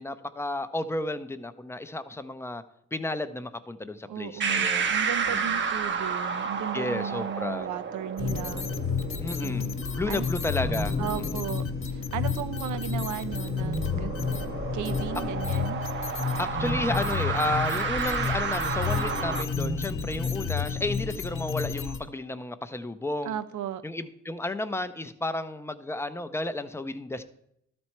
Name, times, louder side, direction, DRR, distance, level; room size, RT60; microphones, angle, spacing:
voice 1, 0.0-2.6 2.9-4.9 5.3-5.6 6.7-7.7 9.2-11.0 11.3-11.4 16.4-23.4 23.8-27.2, left 2 dB, 10° left, 11 dB, 0.5 m, -32 dB
voice 2, 4.1-8.7 9.4-9.7 10.1-10.3 11.0-14.1 14.7-15.8 23.2-23.8, right 9 dB, 75° right, 13 dB, 0.7 m, -35 dB
sound 1, 4.4-19.4, right 5 dB, 40° right, 0.8 m, -32 dB
sound 2, 8.2-22.0, left 5 dB, 45° left, 1.2 m, -31 dB
12.5 x 4.3 x 4.5 m, 0.76 s
cardioid pair, 90°, 30 cm